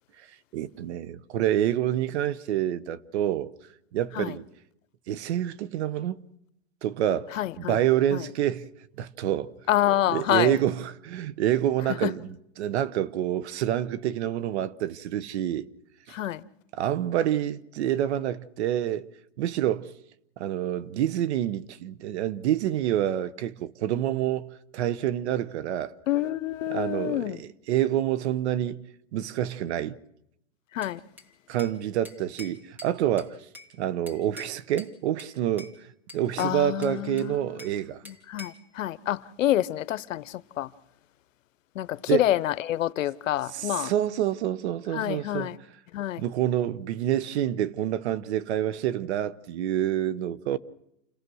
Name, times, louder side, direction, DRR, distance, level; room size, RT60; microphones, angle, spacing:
voice 1, 0.5-3.5 3.9-4.5 5.1-6.2 6.8-8.7 9.0-9.5 10.1-15.7 16.1-16.2 16.7-19.1 19.4-19.9 20.4-25.9 26.7-28.8 29.1-30.0 31.5-33.4 33.8-35.7 36.1-38.0 42.1-42.3 43.5-45.5 46.2-50.6, right 11 dB, 55° right, 1.1 m, -27 dB
voice 2, 7.3-7.8 8.1-8.2 9.7-10.5 12.0-12.1 16.1-16.4 26.1-27.4 30.7-31.0 36.4-37.5 38.0-40.7 41.7-43.9 44.9-45.6 45.9-46.2, left 13 dB, 80° left, 1.0 m, -27 dB
Bell / Glass, 30.8-31.8 32.0-33.7 34.1-34.9 35.2-35.8 36.1-37.8 38.0-38.7, left 2 dB, 5° right, 2.4 m, -46 dB
29.0 x 18.0 x 6.3 m
supercardioid pair, 150°, 38 cm